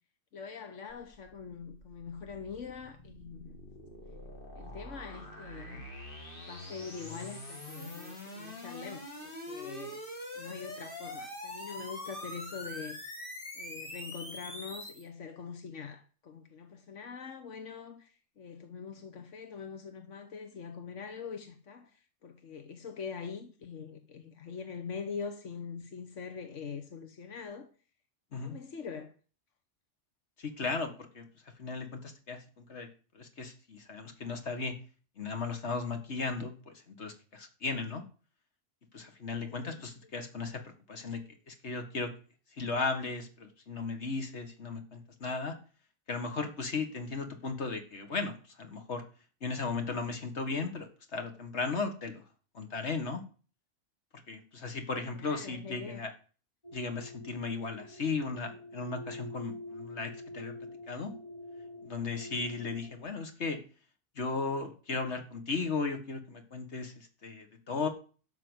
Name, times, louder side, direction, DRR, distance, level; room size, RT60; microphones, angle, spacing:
voice 1, 0.3-3.6 4.5-5.8 6.4-10.0 10.3-13.0 13.5-27.7 28.3-29.1 39.3-39.9 55.1-56.0, left 6 dB, 85° left, 1.5 m, -43 dB
sound 1, 0.9-15.0, left 1 dB, 45° left, 3.0 m, -44 dB
voice 2, 30.4-31.2 31.6-32.9 33.1-34.7 35.2-36.5 36.9-38.0 38.9-40.6 40.9-41.2 41.5-42.1 42.6-45.5 46.1-49.0 49.4-52.2 52.5-53.2 54.3-56.1 56.7-60.5 60.9-61.1 61.8-63.6 64.2-67.9, left 4 dB, 65° left, 2.1 m, -36 dB
sound 2, 56.6-63.0, left 1 dB, 30° left, 2.3 m, -46 dB
12.0 x 5.9 x 8.1 m
omnidirectional pair, 1.2 m